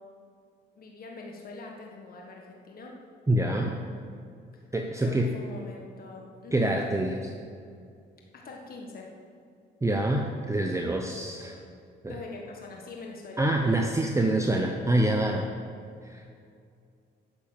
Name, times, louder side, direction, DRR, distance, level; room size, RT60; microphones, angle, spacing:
voice 1, 0.8-2.9 4.5-4.7 5.0-6.6 8.3-9.1 12.0-13.9, left 3 dB, 50° left, 0 dB, 1.5 m, -43 dB
voice 2, 3.3-3.8 4.7-5.3 6.5-7.3 9.8-11.6 12.0-12.1 13.4-15.5 16.0-16.2, right 1 dB, 15° right, 2 dB, 0.8 m, -26 dB
9.2 x 7.1 x 7.5 m, 2.4 s
cardioid pair, 90°, 20 cm